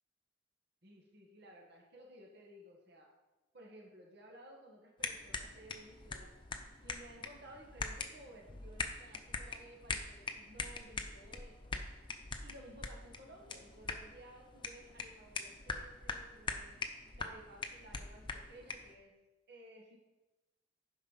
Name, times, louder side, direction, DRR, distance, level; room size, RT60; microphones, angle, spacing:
voice 1, 0.8-3.1 3.5-11.8 12.4-16.8 17.2-19.1 19.5-20.0, right 1 dB, 60° right, 0 dB, 1.8 m, -56 dB
sound 1, 5.0-18.9, left 4 dB, 25° left, 0.8 m, -43 dB
10.5 x 5.5 x 5.7 m, 1.1 s
head